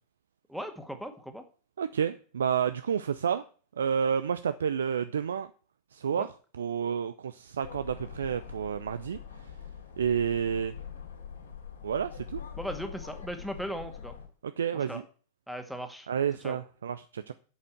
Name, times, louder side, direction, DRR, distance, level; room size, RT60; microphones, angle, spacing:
voice 1, 0.5-1.4 6.1-6.3 12.6-14.2 14.7-15.0 15.5-16.1 16.4-16.6, equal, ahead, 6 dB, 1.9 m, -38 dB
voice 2, 1.8-3.4 3.8-5.5 5.9-6.3 6.6-9.5 10.0-10.7 11.8-12.4 14.4-15.0 16.1-17.3, right 7 dB, 65° right, 12 dB, 0.5 m, -30 dB
sound 1, 7.6-14.3, left 7 dB, 70° left, 3.1 m, -43 dB
8.3 x 7.6 x 7.9 m, 0.40 s
figure-of-eight pair, 90°, 0 cm